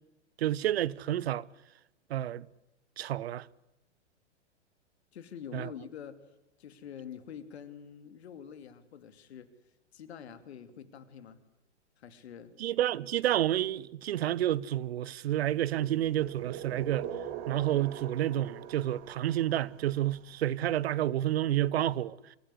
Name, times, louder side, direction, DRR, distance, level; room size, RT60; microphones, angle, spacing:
voice 1, 0.4-1.5 2.1-2.5 3.0-3.4 5.5-5.7 12.6-17.1 17.5-22.4, right 12 dB, 60° right, 1.0 m, -30 dB
voice 2, 5.1-6.2 6.6-9.5 9.9-11.4 12.0-12.5, left 8 dB, 65° left, 2.9 m, -46 dB
sound 1, 15.5-20.4, right 9 dB, 40° right, 2.8 m, -43 dB
26.5 x 16.0 x 9.9 m
figure-of-eight pair, 110°, 35 cm